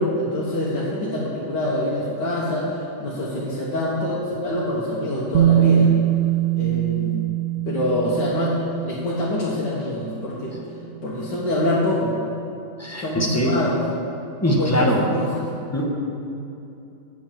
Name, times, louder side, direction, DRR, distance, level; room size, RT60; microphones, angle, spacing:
voice 1, 0.0-5.9 6.6-7.3 7.7-8.6 8.8-10.5 11.0-12.1 13.0-13.8 14.4-15.5, left 1 dB, 80° left, -7 dB, 2.0 m, -25 dB
Bass guitar, 5.3-9.3 10.4-10.5, right 11 dB, 85° right, 0.6 m, -21 dB
voice 2, 12.8-13.5 14.4-15.0 15.7-15.9, equal, 10° left, -1 dB, 0.9 m, -22 dB
8.0 x 7.3 x 7.3 m, 2.7 s
omnidirectional pair, 1.9 m